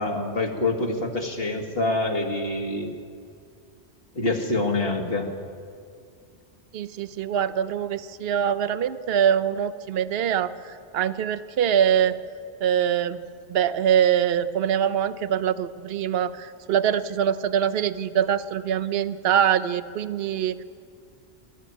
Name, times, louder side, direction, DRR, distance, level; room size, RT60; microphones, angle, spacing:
voice 1, 0.0-2.9 4.1-5.3, left 2 dB, 60° left, 2 dB, 2.2 m, -26 dB
voice 2, 6.7-10.5 10.9-12.1 12.6-13.2 13.5-20.6, right 9 dB, 65° right, 13 dB, 0.9 m, -23 dB
22.5 x 13.5 x 9.3 m, 2.3 s
omnidirectional pair, 1.1 m